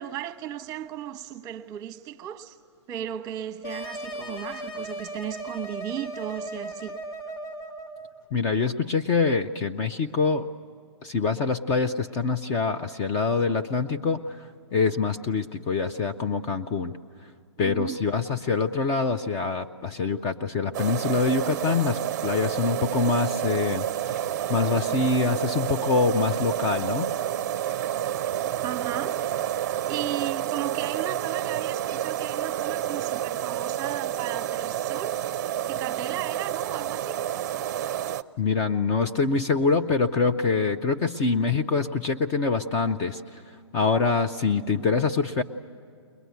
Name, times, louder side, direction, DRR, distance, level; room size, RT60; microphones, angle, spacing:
voice 1, 0.0-2.6 2.9-7.0 17.6-18.0 28.6-29.2 29.6-35.3 35.6-37.2, right 11 dB, 25° right, 1.0 m, -35 dB
sound 1, 3.6-8.1, right 1 dB, 45° left, 1.6 m, -37 dB
voice 2, 8.3-10.5 11.0-14.4 14.7-17.0 17.6-27.1 38.4-43.4 43.7-45.4, left 4 dB, 20° left, 0.6 m, -25 dB
sound 2, 20.7-38.2, right 11 dB, 40° right, 0.6 m, -29 dB
22.0 x 20.5 x 9.3 m
hypercardioid pair, 140°, 15 cm